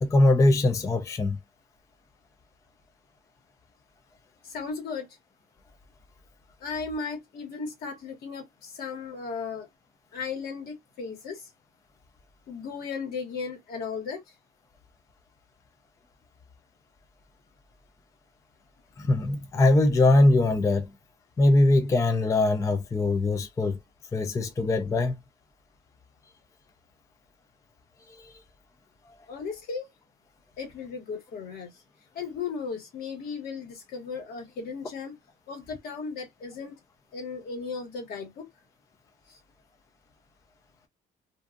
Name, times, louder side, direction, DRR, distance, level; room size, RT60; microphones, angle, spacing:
voice 1, 0.0-1.4 19.0-20.9 21.4-23.8 24.1-25.2 28.1-28.3, left 2 dB, 20° left, 0.4 m, -22 dB
voice 2, 4.4-5.1 6.6-9.7 10.1-11.5 12.5-14.3 29.3-29.9 30.6-31.8 32.1-35.2 35.5-36.8 37.1-38.5 39.3-39.4, left 5 dB, 65° left, 1.3 m, -36 dB
2.5 x 2.3 x 2.4 m
cardioid pair, 110°, 17 cm